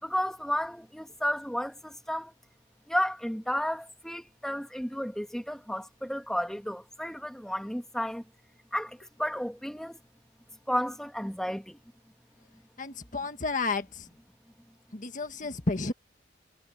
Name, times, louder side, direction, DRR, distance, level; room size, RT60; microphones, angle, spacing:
voice 1, 0.0-2.3 2.9-8.2 8.7-10.0 10.7-11.8, equal, 5° left, 2.1 m, -32 dB
voice 2, 12.8-14.1 14.9-15.9, left 3 dB, 45° left, 1.7 m, -31 dB
head